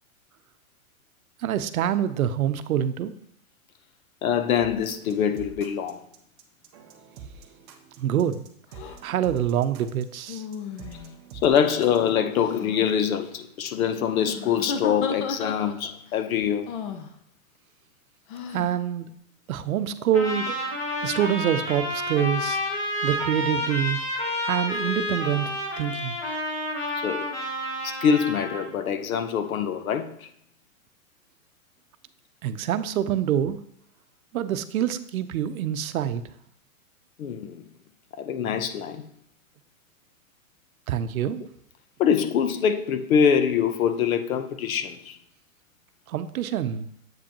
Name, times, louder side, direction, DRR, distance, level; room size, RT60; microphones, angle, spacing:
voice 1, 1.4-3.1 8.0-8.4 9.0-10.4 18.5-19.1 19.5-20.5 21.0-22.6 23.0-24.0 24.4-26.2 32.4-33.6 34.3-36.2 40.9-41.5 46.1-46.9, right 10 dB, 85° right, 0.7 m, -26 dB
voice 2, 4.2-6.0 11.4-16.7 27.0-27.3 27.8-30.3 37.2-37.7 38.2-39.0 42.0-45.2, left 7 dB, 80° left, 0.9 m, -24 dB
sound 1, 4.6-12.1, right 6 dB, 20° right, 0.4 m, -46 dB
sound 2, 8.7-9.0 10.3-11.2 12.3-12.8 14.2-15.9 16.7-17.1 18.3-18.8, left 6 dB, 40° left, 0.6 m, -34 dB
Trumpet, 20.1-28.7, left 1 dB, 20° left, 1.2 m, -30 dB
7.7 x 5.2 x 2.9 m
hypercardioid pair, 145°, 41 cm